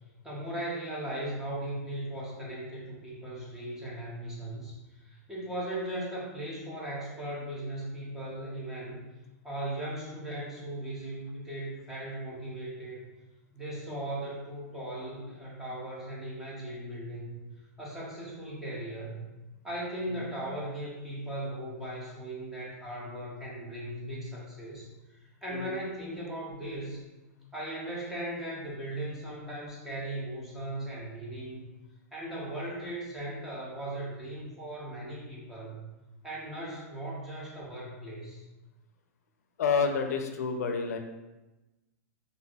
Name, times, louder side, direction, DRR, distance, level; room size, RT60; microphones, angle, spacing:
voice 1, 0.2-9.0 9.4-13.0 13.5-17.4 17.8-19.3 19.6-27.1 27.5-31.7 32.1-35.9 36.2-38.4, right 1 dB, 5° right, -6 dB, 0.4 m, -38 dB
voice 2, 39.6-41.0, left 5 dB, 80° left, 6 dB, 0.4 m, -28 dB
3.2 x 2.5 x 2.3 m, 1.1 s
supercardioid pair, 170°, 9 cm